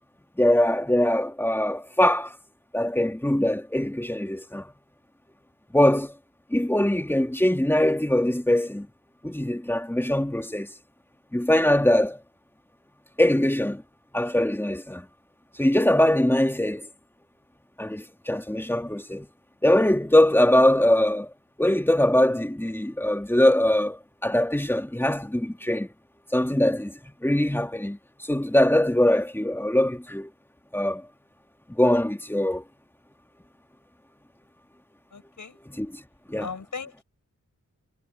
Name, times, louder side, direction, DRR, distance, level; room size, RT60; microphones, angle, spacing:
voice 1, 0.4-2.4 2.7-4.7 5.7-6.1 6.5-8.9 9.2-10.7 11.3-12.2 13.2-13.8 14.1-15.1 15.6-16.9 17.8-19.3 19.6-21.3 21.6-25.9 26.3-28.0 28.3-30.3 30.7-31.0 31.8-32.6 35.7-35.9 36.3-36.5, left 1 dB, 5° left, 2.3 m, -22 dB
voice 2, 35.1-35.6 36.4-37.0, left 5 dB, 65° left, 6.4 m, -37 dB
wide cardioid pair, 70°, 32 cm